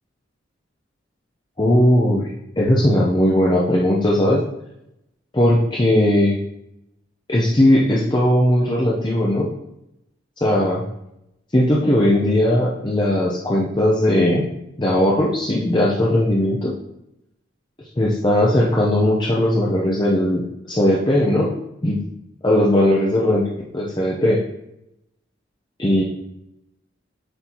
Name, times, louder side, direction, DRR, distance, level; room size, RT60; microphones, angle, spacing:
voice 1, 1.6-4.4 5.3-6.4 7.3-9.5 10.4-10.8 11.5-14.4 14.8-16.7 18.0-21.5 21.8-22.0 22.4-23.4 23.7-24.4 25.8-26.0, left 1 dB, 25° left, -4 dB, 0.7 m, -18 dB
7.9 x 4.4 x 2.9 m, 0.84 s
head